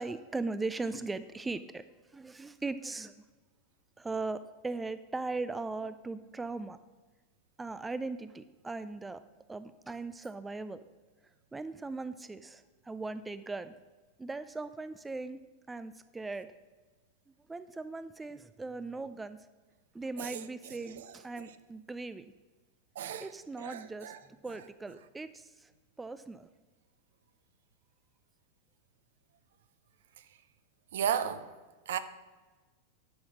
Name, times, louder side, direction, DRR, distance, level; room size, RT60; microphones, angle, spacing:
voice 1, 0.0-1.8 2.1-3.1 4.0-6.8 7.6-9.2 9.5-10.8 11.5-13.7 14.2-15.4 15.7-16.5 17.5-19.4 19.9-22.2 23.2-24.1 24.4-25.7 26.0-26.5, right 3 dB, 10° right, 0.4 m, -39 dB
voice 2, 23.0-23.3 23.6-24.2 30.9-31.5 31.9-32.0, right 9 dB, 60° right, 0.6 m, -34 dB
11.5 x 5.6 x 6.3 m
figure-of-eight pair, 90°, 0 cm